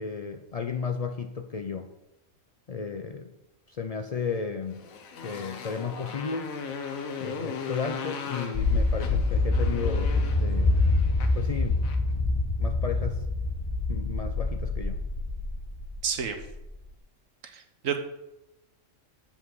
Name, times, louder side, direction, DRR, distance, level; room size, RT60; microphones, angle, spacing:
voice 1, 0.0-1.9 2.7-3.3 3.7-4.8 5.2-6.5 7.2-10.8 11.4-11.8 12.6-13.2 13.9-15.0, left 5 dB, 65° left, 6 dB, 0.3 m, -34 dB
Motorcycle, 4.7-12.1, left 5 dB, 90° left, 1.3 m, -38 dB
sound 1, 8.5-16.6, left 3 dB, 25° left, 0.8 m, -26 dB
voice 2, 16.0-16.4 17.4-18.0, right 7 dB, 75° right, 6 dB, 1.3 m, -30 dB
7.3 x 5.5 x 6.0 m, 0.91 s
omnidirectional pair, 1.4 m